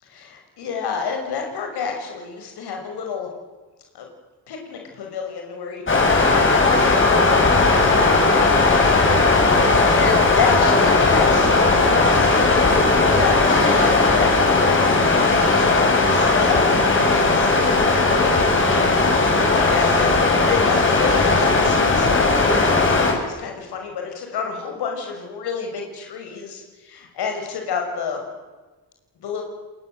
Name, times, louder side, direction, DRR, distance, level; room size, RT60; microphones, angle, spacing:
voice 1, 0.0-3.3 3.9-4.1 4.5-8.1 8.5-18.4 19.5-20.1 20.5-28.2 29.2-29.4, left 6 dB, 85° left, 2 dB, 6.1 m, -30 dB
sound 1, 5.9-23.1, left 3 dB, 30° left, 6.5 m, -17 dB
28.0 x 21.0 x 7.9 m, 1.3 s
cardioid pair, 110°, 38 cm